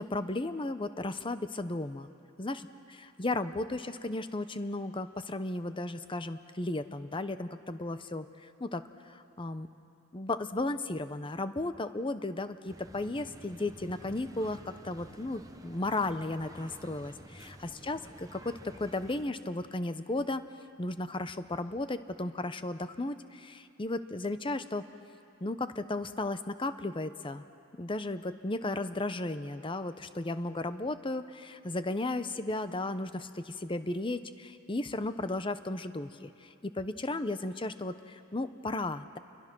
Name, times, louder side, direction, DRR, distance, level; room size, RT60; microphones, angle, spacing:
voice 1, 0.0-2.1 2.4-2.6 3.2-8.3 8.6-8.8 9.1-9.7 10.1-17.6 17.8-20.4 20.8-24.8 25.4-27.4 27.8-36.3 36.6-39.2, left 2 dB, 25° left, 11 dB, 0.8 m, -34 dB
sound 1, 12.7-19.2, right 1 dB, 20° right, 1.2 m, -51 dB
28.5 x 23.0 x 6.2 m, 2.5 s
head